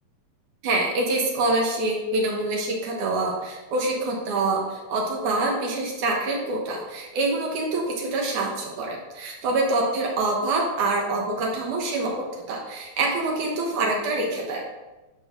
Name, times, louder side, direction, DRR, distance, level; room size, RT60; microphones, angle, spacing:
voice 1, 0.6-14.6, right 2 dB, 75° right, -1 dB, 2.7 m, -26 dB
11.5 x 3.9 x 6.4 m, 1.1 s
omnidirectional pair, 3.7 m